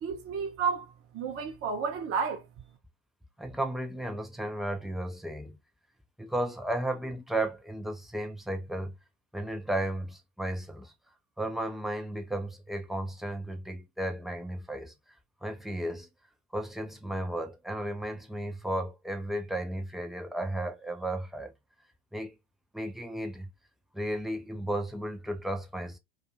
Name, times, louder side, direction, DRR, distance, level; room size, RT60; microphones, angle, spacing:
voice 1, 0.0-0.9 1.1-2.4, right 6 dB, 35° right, 0.8 m, -31 dB
voice 2, 3.4-5.6 6.2-8.9 9.3-10.9 11.4-14.9 15.4-16.1 16.5-21.5 22.1-22.3 22.7-23.5 23.9-26.0, right 1 dB, ahead, 0.4 m, -34 dB
2.6 x 2.4 x 2.6 m
hypercardioid pair, 85°, 37 cm